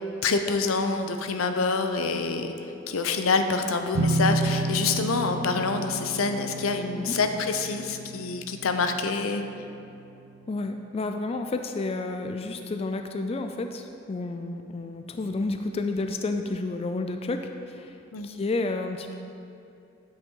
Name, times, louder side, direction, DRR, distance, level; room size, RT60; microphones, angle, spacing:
voice 1, 0.2-9.4 18.1-18.3, left 4 dB, 85° left, 7 dB, 0.6 m, -26 dB
sound 1, 3.9-9.5, right 2 dB, 65° right, 0.6 m, -31 dB
voice 2, 10.5-18.0 18.2-19.2, left 2 dB, 30° left, 6 dB, 0.3 m, -31 dB
9.0 x 8.0 x 3.8 m, 2.7 s
head